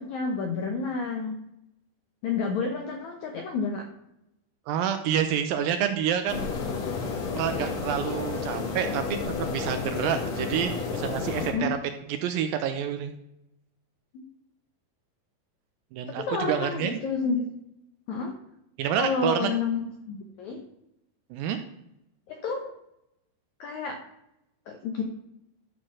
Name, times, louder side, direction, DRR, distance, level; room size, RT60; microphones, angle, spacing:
voice 1, 0.0-1.4 2.2-3.9 11.5-11.7 14.1-14.2 16.2-17.5 18.1-18.3 18.9-20.6 22.3-22.7 23.6-24.0 24.7-25.0, left 4 dB, 80° left, 3 dB, 1.7 m, -30 dB
voice 2, 4.7-6.4 7.3-9.0 9.4-11.8 12.1-13.1 15.9-17.0 18.8-19.5 21.3-21.6, right 9 dB, 85° right, 8 dB, 2.1 m, -28 dB
sound 1, 6.3-11.5, left 4 dB, 55° left, 2.2 m, -31 dB
11.5 x 4.5 x 6.1 m, 0.84 s
omnidirectional pair, 4.5 m